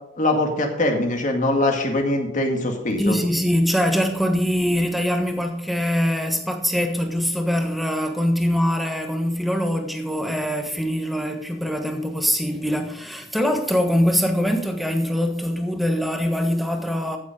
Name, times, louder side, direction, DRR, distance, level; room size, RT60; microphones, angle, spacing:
voice 1, 0.2-3.2, left 1 dB, 40° left, 2.1 m, -22 dB
voice 2, 3.0-17.2, equal, ahead, 1.4 m, -23 dB
14.5 x 7.3 x 5.1 m
head